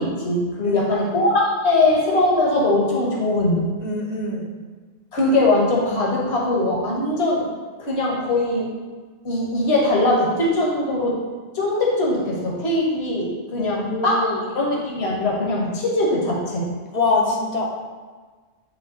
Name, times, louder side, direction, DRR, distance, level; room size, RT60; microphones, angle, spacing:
voice 1, 0.0-3.7 5.1-7.4 7.8-8.7 9.2-11.2 11.5-16.7, left 2 dB, 60° left, -3 dB, 1.5 m, -21 dB
voice 2, 3.8-4.5 13.6-14.4 16.9-17.6, left 3 dB, 35° left, -1 dB, 1.0 m, -24 dB
8.5 x 3.4 x 3.9 m, 1.4 s
omnidirectional pair, 1.3 m